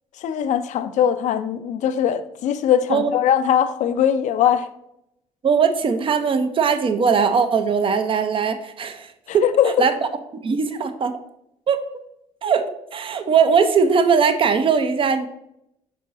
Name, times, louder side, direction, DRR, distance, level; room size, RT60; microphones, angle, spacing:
voice 1, 0.2-4.7 9.3-9.9, left 9 dB, 65° left, 0.5 m, -20 dB
voice 2, 5.4-9.9 10.4-11.2 11.7-11.8 12.4-15.3, right 6 dB, 40° right, 0.7 m, -20 dB
6.3 x 3.7 x 4.1 m
supercardioid pair, 75°, 13 cm